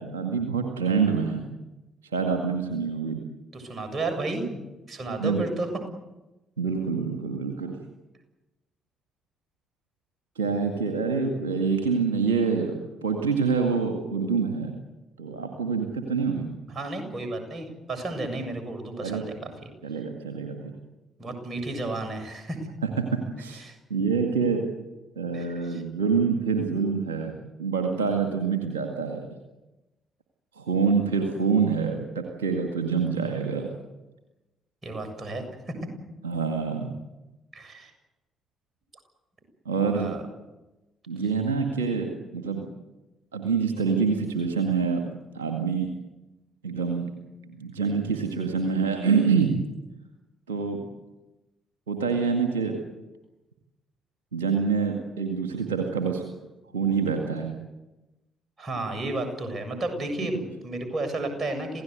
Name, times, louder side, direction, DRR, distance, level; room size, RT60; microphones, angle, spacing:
voice 1, 0.0-1.5 2.1-3.2 5.2-5.4 6.6-7.8 10.4-14.8 15.2-16.5 19.0-19.2 19.8-20.7 23.0-23.6 23.9-24.6 25.2-29.3 30.6-33.7 36.2-36.9 39.7-40.1 41.1-42.7 43.3-45.1 45.3-45.9 46.6-47.1 47.6-49.5 50.5-50.8 51.9-52.8 54.3-56.2 56.7-57.6, right 5 dB, 80° right, 3 dB, 2.0 m, -26 dB
voice 2, 3.5-4.6 4.9-5.7 16.7-19.5 21.2-22.6 23.6-23.8 25.3-25.8 34.8-35.8 37.5-37.9 39.9-40.2 58.6-61.8, right 2 dB, 35° right, 7 dB, 7.2 m, -32 dB
27.5 x 17.0 x 8.1 m, 1.0 s
figure-of-eight pair, 40°, 0 cm